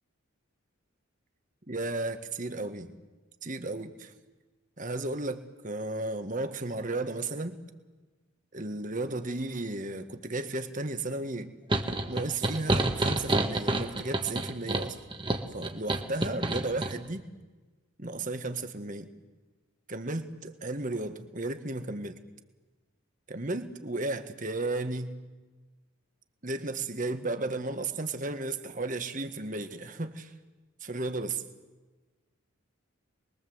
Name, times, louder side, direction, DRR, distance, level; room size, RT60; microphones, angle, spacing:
voice 1, 1.7-2.9 3.4-4.1 4.8-7.6 8.5-11.5 12.1-15.0 15.5-17.3 18.0-19.1 19.9-22.2 23.3-25.1 26.4-30.3 30.8-31.4, right 2 dB, 40° right, 8 dB, 1.6 m, -34 dB
sound 1, 11.7-16.9, right 2 dB, 20° right, 1.5 m, -29 dB
28.0 x 22.0 x 8.0 m, 1.2 s
head